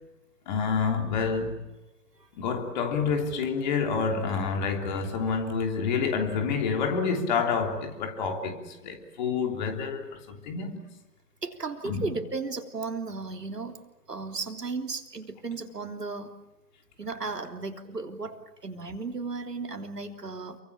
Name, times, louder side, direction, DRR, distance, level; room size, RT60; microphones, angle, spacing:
voice 1, 0.5-1.7 2.4-10.8 11.8-12.1, left 5 dB, 25° left, 3.3 m, -28 dB
voice 2, 11.4-13.8 14.1-16.4 17.0-20.6, right 4 dB, 70° right, 3.6 m, -35 dB
29.0 x 24.0 x 7.3 m
figure-of-eight pair, 145°, 50 cm